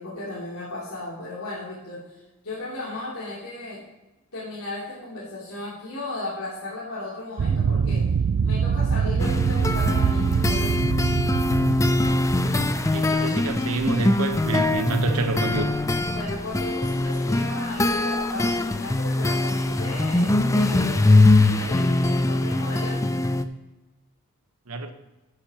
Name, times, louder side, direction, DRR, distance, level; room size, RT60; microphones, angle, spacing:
voice 1, 0.0-3.8 4.3-8.0 8.4-11.0 16.0-23.0, left 2 dB, 75° left, -9 dB, 3.1 m, -35 dB
sound 1, 7.4-13.2, right 6 dB, 55° right, 0.3 m, -24 dB
sound 2, 9.2-23.4, left 2 dB, 15° left, 0.4 m, -22 dB
voice 2, 12.9-15.7 24.7-24.9, right 3 dB, 80° right, 7 dB, 1.1 m, -27 dB
11.5 x 9.5 x 3.0 m, 1.1 s
head